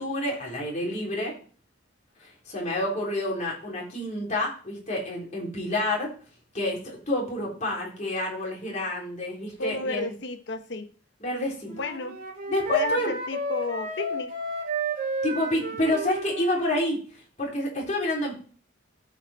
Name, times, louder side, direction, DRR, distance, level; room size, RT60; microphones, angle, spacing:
voice 1, 0.0-1.3 2.2-6.1 6.5-10.1 11.2-11.7 12.5-13.1 15.2-17.0 17.4-18.4, left 1 dB, 40° left, -2 dB, 3.7 m, -28 dB
voice 2, 9.6-10.9 11.7-12.2 12.7-14.3, left 3 dB, 65° left, 9 dB, 1.0 m, -32 dB
Wind instrument woodwind instrument, 11.7-16.9, right 2 dB, 45° right, 2.5 m, -33 dB
15.0 x 5.2 x 4.3 m, 0.41 s
head